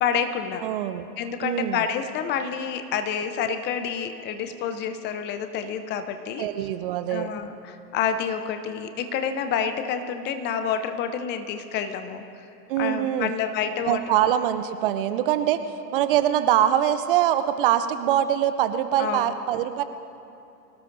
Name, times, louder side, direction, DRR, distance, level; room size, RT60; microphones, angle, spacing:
voice 1, 0.0-0.6 1.2-6.5 7.1-12.2 12.8-14.2 19.0-19.3, left 7 dB, 20° left, 8 dB, 0.7 m, -28 dB
voice 2, 0.6-1.1 1.4-1.8 6.4-7.3 12.7-13.3 13.8-19.8, right 11 dB, 35° right, 11 dB, 0.6 m, -23 dB
25.0 x 17.5 x 2.7 m, 2.9 s
figure-of-eight pair, 110°, 49 cm